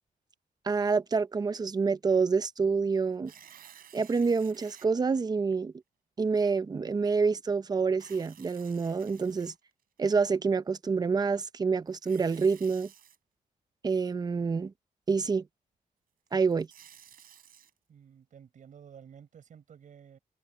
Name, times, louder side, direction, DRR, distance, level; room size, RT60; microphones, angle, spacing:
voice 1, 0.6-3.3 3.9-5.7 6.2-9.5 10.0-12.9 13.8-14.7 15.1-15.4 16.3-16.7, right 5 dB, 25° right, 0.7 m, -27 dB
Tearing, 3.1-4.9 5.5-5.6 7.9-10.0 11.9-13.2 16.3-17.7, right 9 dB, 75° right, 4.0 m, -54 dB
voice 2, 17.9-20.2, right 8 dB, 60° right, 6.9 m, -52 dB
wide cardioid pair, 170°, 15 cm